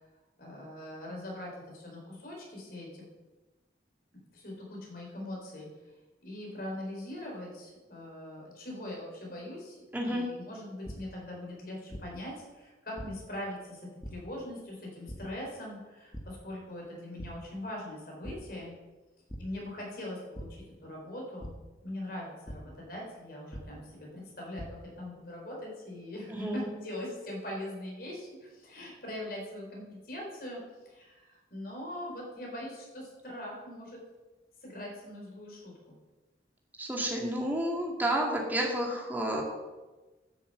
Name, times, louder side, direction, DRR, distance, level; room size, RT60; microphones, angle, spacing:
voice 1, 0.4-3.1 4.3-5.7 6.2-13.8 14.1-18.7 19.4-21.5 21.8-30.6 30.8-34.0 34.6-36.0, left 1 dB, 50° left, -2 dB, 4.4 m, -41 dB
voice 2, 9.9-10.2 26.3-26.7 36.8-39.4, right 1 dB, 10° right, -1 dB, 2.2 m, -30 dB
sound 1, 10.8-10.9 11.9-12.0 13.0-13.1 14.0-14.1 15.1-15.2 16.1-16.2 16.7-16.9 17.2-17.3 18.2-18.3 19.3-19.4 20.3-20.4 21.4-21.5 22.5-22.6 23.5-23.6 24.3-24.7, equal, 20° left, 1.4 m, -40 dB
10.5 x 7.5 x 7.9 m, 1.2 s
head